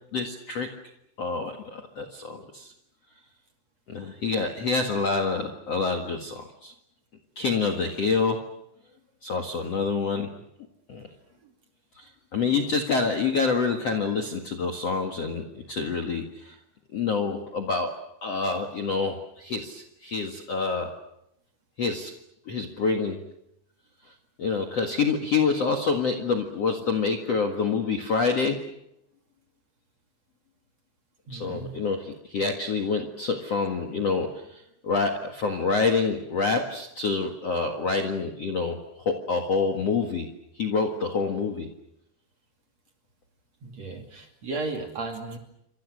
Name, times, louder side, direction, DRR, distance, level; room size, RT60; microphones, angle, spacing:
voice 1, 0.1-0.7 1.2-2.7 3.9-6.7 7.4-8.4 9.2-10.3 10.9-11.1 12.0-16.6 16.9-20.9 21.8-22.1 22.5-23.2 24.4-28.7 31.3-40.3 40.5-41.7, left 4 dB, 50° left, 3 dB, 1.9 m, -27 dB
voice 2, 31.3-31.7 43.6-45.4, right 3 dB, 40° right, 3 dB, 3.2 m, -34 dB
29.0 x 26.0 x 6.5 m, 0.80 s
omnidirectional pair, 5.3 m